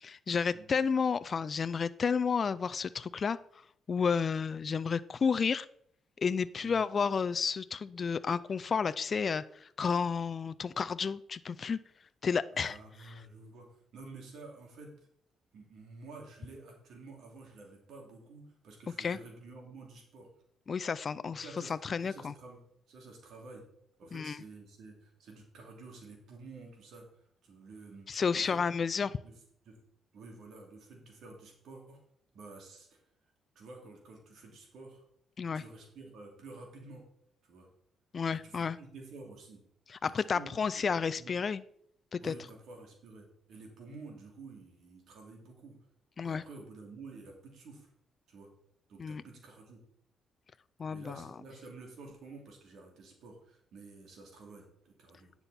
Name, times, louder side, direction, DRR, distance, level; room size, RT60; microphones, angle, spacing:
voice 1, 0.0-3.4 3.9-5.7 6.2-11.8 12.2-12.8 13.1-13.2 19.0-19.2 20.7-22.3 24.1-24.4 28.1-29.1 35.4-35.6 38.1-38.8 39.9-41.6 42.1-42.3 46.2-46.4 49.0-49.2 50.8-51.3, left 6 dB, 40° left, 15 dB, 0.4 m, -31 dB
voice 2, 12.5-14.9 15.5-20.3 21.4-21.7 22.0-22.6 22.9-23.6 24.0-29.3 29.6-29.8 30.1-32.0 32.3-33.0 33.5-35.0 35.5-37.0 37.5-37.7 38.3-39.6 40.0-40.5 40.9-41.4 42.2-45.8 46.2-47.9 48.3-48.5 48.9-49.8 50.9-55.3, right 3 dB, 70° right, 1 dB, 2.9 m, -50 dB
10.0 x 6.9 x 4.2 m, 0.68 s
cardioid pair, 90°, 0 cm